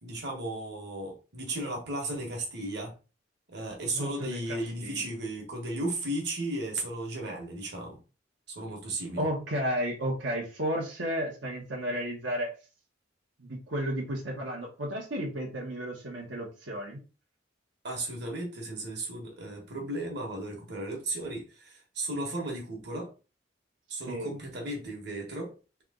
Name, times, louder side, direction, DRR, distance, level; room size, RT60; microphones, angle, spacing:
voice 1, 0.0-2.9 3.5-8.0 8.5-9.3 17.8-23.1 23.9-25.5, right 1 dB, 60° right, 0 dB, 1.5 m, -35 dB
voice 2, 3.9-5.1 9.2-12.5 13.4-17.0 24.1-24.3, equal, 85° right, -2 dB, 1.3 m, -33 dB
3.5 x 3.5 x 3.8 m, 0.33 s
head